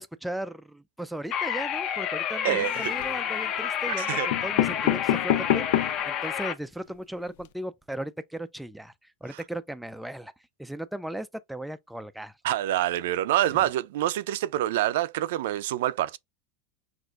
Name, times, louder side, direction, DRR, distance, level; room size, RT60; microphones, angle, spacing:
voice 1, 0.0-8.9 9.2-10.3 10.6-12.3 13.5-13.7, right 1 dB, ahead, 0.3 m, -37 dB
sound 1, 1.3-6.5, left 9 dB, 35° left, 0.7 m, -30 dB
voice 2, 2.4-2.9 3.9-4.3 9.3-9.4 12.4-16.2, right 13 dB, 75° right, 0.4 m, -26 dB
sound 2, 2.6-3.2 3.9-4.0 4.3-6.1 6.6-6.7 6.9-7.0 7.3-7.5, left 12 dB, 70° left, 0.5 m, -27 dB
6.1 x 2.5 x 2.4 m
supercardioid pair, 160°, 0 cm